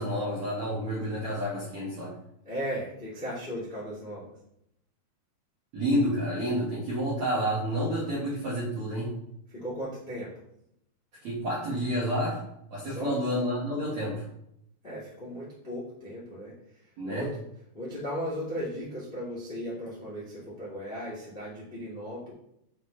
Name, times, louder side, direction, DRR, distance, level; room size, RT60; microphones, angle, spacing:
voice 1, 0.0-2.1 5.7-9.1 11.2-12.4 12.7-14.2 17.0-17.2, equal, 70° right, -8 dB, 1.6 m, -29 dB
voice 2, 2.4-4.3 9.5-10.3 12.8-13.2 14.8-17.3 17.7-22.3, equal, 80° left, -7 dB, 0.5 m, -36 dB
7.7 x 5.4 x 3.3 m, 0.77 s
omnidirectional pair, 6.0 m